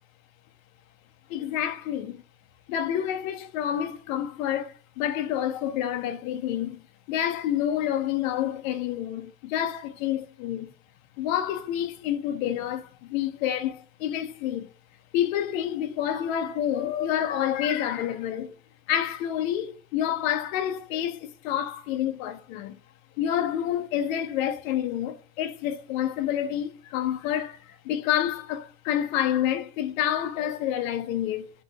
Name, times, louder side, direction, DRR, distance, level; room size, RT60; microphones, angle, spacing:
voice 1, 1.3-2.2 2.7-10.7 11.2-14.7 15.1-18.5 18.9-22.8 23.2-31.5, left 10 dB, 75° left, 0.7 m, -28 dB
4.1 x 3.3 x 3.3 m
supercardioid pair, 100°, 41 cm